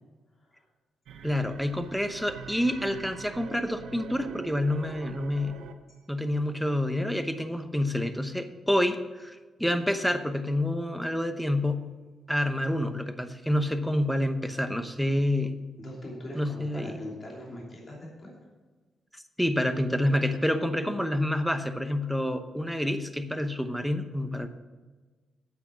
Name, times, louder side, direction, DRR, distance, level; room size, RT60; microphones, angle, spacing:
sound 1, 1.1-6.0, right 6 dB, 85° right, 0.8 m, -44 dB
voice 1, 1.2-5.5 6.1-11.8 12.3-15.6 16.3-17.0 19.4-24.5, left 1 dB, ahead, 8 dB, 0.9 m, -28 dB
voice 2, 15.8-18.3, left 1 dB, 30° left, -3 dB, 3.0 m, -41 dB
8.7 x 8.5 x 6.0 m, 1.3 s
cardioid pair, 110°, 0 cm